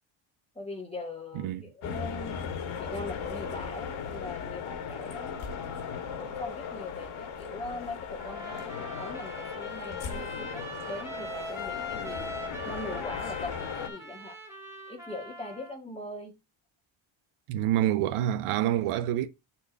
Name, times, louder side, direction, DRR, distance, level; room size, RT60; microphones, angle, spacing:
voice 1, 0.5-2.4 2.8-5.4 6.2-14.6 14.9-16.4, left 2 dB, 10° left, 1.8 m, -41 dB
voice 2, 1.3-1.7 17.5-19.3, right 12 dB, 90° right, 0.8 m, -27 dB
sound 1, 1.8-13.9, left 6 dB, 70° left, 1.7 m, -37 dB
Trumpet, 8.2-15.8, equal, 5° right, 2.5 m, -41 dB
8.2 x 4.3 x 3.5 m
cardioid pair, 125°, 49 cm